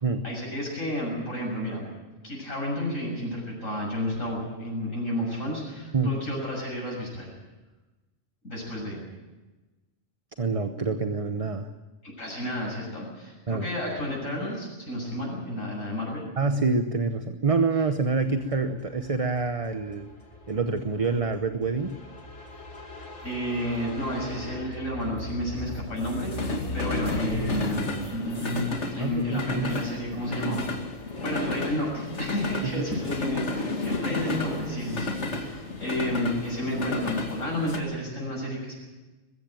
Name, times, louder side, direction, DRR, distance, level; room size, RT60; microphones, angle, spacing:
voice 1, 0.2-1.8 2.2-7.3 8.4-9.0 12.0-16.3 23.2-30.6 31.2-38.8, equal, 80° left, -2 dB, 7.2 m, -31 dB
voice 2, 10.4-11.7 13.5-13.7 16.4-20.1 20.5-21.9 29.0-29.8 32.6-32.9, right 4 dB, 30° right, 8 dB, 0.9 m, -27 dB
sound 1, 18.3-37.8, left 2 dB, 60° left, 2.7 m, -33 dB
21.5 x 15.5 x 9.1 m, 1.2 s
omnidirectional pair, 1.4 m